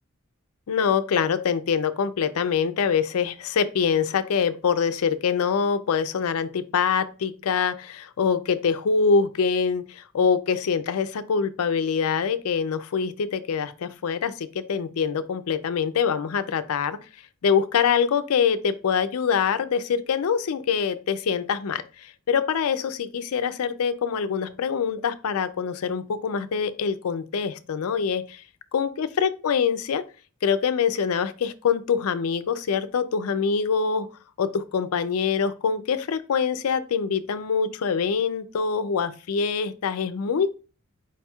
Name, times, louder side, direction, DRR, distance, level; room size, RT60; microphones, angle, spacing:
voice 1, 0.7-17.0 17.4-28.4 28.7-30.0 30.4-34.1 34.4-40.5, left 6 dB, 85° left, 11 dB, 0.4 m, -24 dB
4.7 x 2.3 x 4.3 m, 0.34 s
head